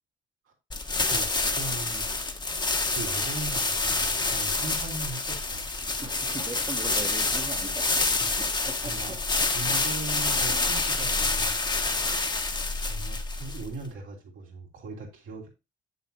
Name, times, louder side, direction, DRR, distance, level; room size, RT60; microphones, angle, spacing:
sound 1, 0.7-13.8, left 3 dB, 20° left, 1.0 m, -27 dB
voice 1, 1.1-2.3 2.9-5.6 8.2-8.3 8.8-9.2 9.5-11.6 12.9-15.5, right 3 dB, 85° right, 3.0 m, -39 dB
voice 2, 6.0-8.0 8.4-9.2 10.4-10.7, right 3 dB, 20° right, 1.0 m, -40 dB
7.5 x 6.9 x 2.7 m
cardioid pair, 90°, 20 cm